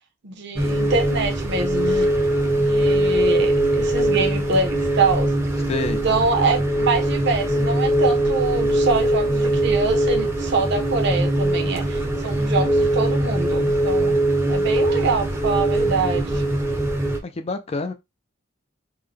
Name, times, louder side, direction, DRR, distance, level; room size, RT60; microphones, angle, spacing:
voice 1, 0.2-2.1 2.5-5.3 5.9-14.2 14.5-16.4, right 3 dB, 60° right, 0.8 m, -25 dB
sound 1, 0.6-17.2, right 1 dB, 15° right, 0.7 m, -21 dB
voice 2, 5.7-6.0 17.2-17.9, left 3 dB, 30° left, 0.4 m, -27 dB
3.6 x 2.2 x 3.3 m
head